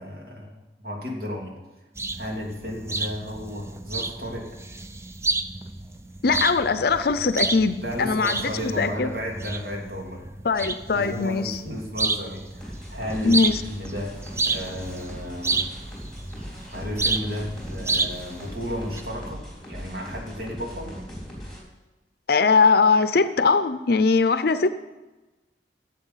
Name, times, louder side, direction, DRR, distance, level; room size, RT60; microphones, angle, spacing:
voice 1, 0.0-1.5 2.2-4.5 7.8-10.2 10.9-15.7 16.7-21.0, equal, 60° right, -1 dB, 2.8 m, -33 dB
sound 1, 2.0-19.0, right 3 dB, 15° right, 0.5 m, -31 dB
voice 2, 6.2-9.1 10.4-11.6 13.2-13.6 22.3-24.8, left 4 dB, 60° left, 12 dB, 0.6 m, -21 dB
sound 2, 12.6-21.6, equal, ahead, 4.0 m, -39 dB
15.5 x 7.7 x 5.7 m, 1.1 s
head